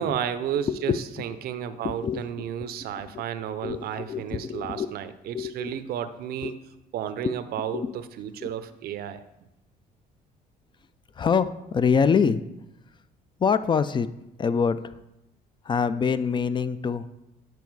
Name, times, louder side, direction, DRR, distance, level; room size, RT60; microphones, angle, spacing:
voice 1, 0.0-6.5 6.9-9.2, right 9 dB, 65° right, 11 dB, 0.6 m, -32 dB
voice 2, 3.6-4.9 5.3-5.7 6.4-6.5 7.2-7.3 7.7-7.9 8.4-8.5 11.2-12.4 13.4-14.1 14.4-15.0 15.6-17.1, left 6 dB, 30° left, 14 dB, 0.4 m, -25 dB
9.3 x 4.7 x 4.7 m, 0.91 s
cardioid pair, 110°, 17 cm